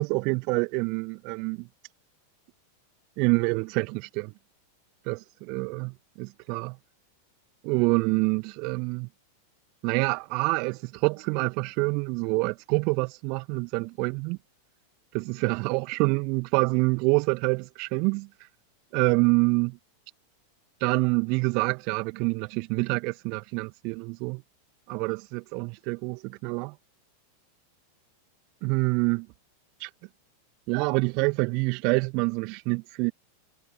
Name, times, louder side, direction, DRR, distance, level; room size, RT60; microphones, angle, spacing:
voice 1, 0.0-1.7 3.2-4.3 5.1-6.8 7.6-9.1 9.8-14.4 15.1-18.3 18.9-19.8 20.8-24.4 24.9-26.7 28.6-29.3 29.8-29.9 30.7-33.1, right 32 dB, 45° right, 1.8 m, -26 dB
figure-of-eight pair, 90°, 0 cm